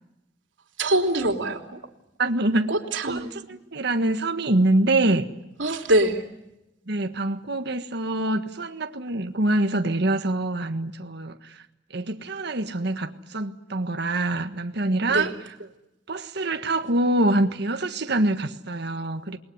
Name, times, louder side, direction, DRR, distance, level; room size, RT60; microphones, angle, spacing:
voice 1, 0.8-1.8 2.7-3.3 5.6-6.2 15.1-15.3, right 1 dB, 90° right, 3.3 m, -23 dB
voice 2, 2.2-2.7 3.0-5.3 6.9-11.6 11.9-15.3 16.1-19.4, right 2 dB, 65° right, 1.6 m, -25 dB
28.5 x 21.0 x 9.7 m
head